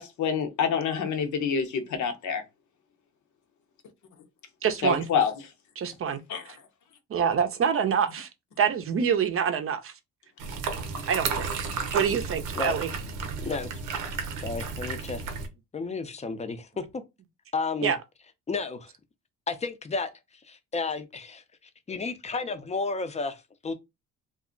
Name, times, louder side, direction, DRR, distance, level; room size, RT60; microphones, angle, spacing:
voice 1, 0.0-2.4 4.8-5.3 6.3-6.4, left 6 dB, 70° left, 0.8 m, -27 dB
voice 2, 4.6-5.1 5.8-6.2 6.5-6.6 7.1-8.3 8.6-9.9 11.1-11.7 11.9-12.9 17.8-18.0, right 7 dB, 50° right, 0.5 m, -26 dB
sound 1, 10.4-15.5, right 5 dB, 90° right, 0.7 m, -33 dB
voice 3, 13.4-13.7 14.4-15.3 15.7-16.8 17.5-17.9 18.5-18.9 19.5-20.1 20.4-21.4 21.9-23.7, left 4 dB, 20° left, 0.5 m, -32 dB
2.4 x 2.0 x 3.7 m
cardioid pair, 90°, 30 cm